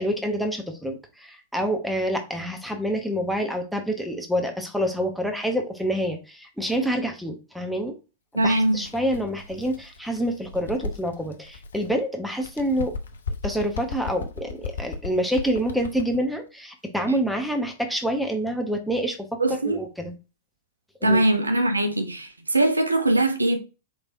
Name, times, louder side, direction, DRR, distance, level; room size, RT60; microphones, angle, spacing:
voice 1, 0.0-7.9 8.3-12.9 13.4-20.1 21.0-21.2, equal, ahead, 0.9 m, -27 dB
voice 2, 8.3-8.8 19.4-19.8 21.0-23.6, right 1 dB, 85° right, 0.6 m, -21 dB
Bird, 8.4-12.0 12.4-16.2, left 4 dB, 70° left, 0.5 m, -36 dB
4.5 x 3.2 x 2.6 m
figure-of-eight pair, 100°, 0 cm